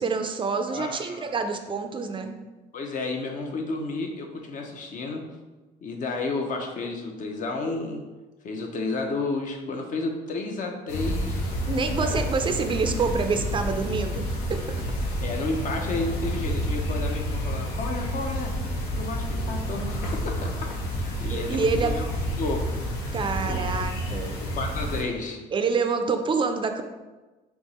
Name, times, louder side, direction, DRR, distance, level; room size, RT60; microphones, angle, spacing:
voice 1, 0.0-2.3 11.7-14.6 21.3-22.0 23.1-24.4 25.5-26.8, right 4 dB, 30° right, 6 dB, 0.4 m, -27 dB
voice 2, 0.7-1.3 2.7-5.2 5.8-8.0 8.4-11.4 12.0-12.2 15.2-18.5 19.0-20.7 21.0-22.1 22.4-22.7 23.5-23.7 24.4-25.4, left 3 dB, 50° left, 2 dB, 0.8 m, -31 dB
sound 1, 10.9-25.0, equal, 80° left, 0.9 m, -29 dB
3.5 x 2.9 x 4.1 m, 1.2 s
cardioid pair, 110°, 17 cm